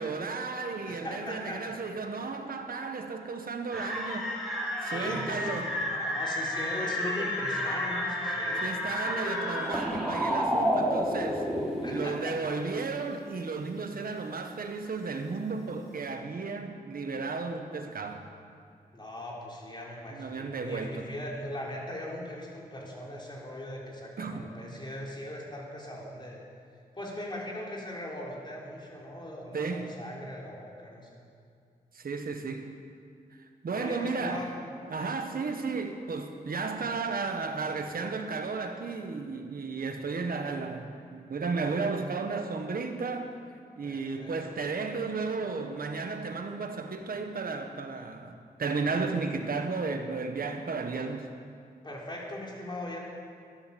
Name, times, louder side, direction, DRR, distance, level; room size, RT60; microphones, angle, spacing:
voice 1, 0.0-4.3 4.8-5.7 7.2-7.3 8.6-11.5 11.9-18.2 20.1-21.0 24.2-24.5 29.5-29.9 31.9-32.6 33.6-34.5 34.9-43.3 43.8-51.3, right 4 dB, 65° right, 5 dB, 1.5 m, -34 dB
voice 2, 0.8-1.6 4.8-8.8 11.8-12.5 18.9-26.4 26.9-31.2 33.7-34.5 35.0-35.3 43.8-44.6 51.8-53.0, left 1 dB, 30° left, -3 dB, 3.9 m, -39 dB
sound 1, 3.7-12.0, equal, ahead, 4.1 m, -30 dB
13.5 x 11.0 x 7.1 m, 2.3 s
cardioid pair, 70°, 16 cm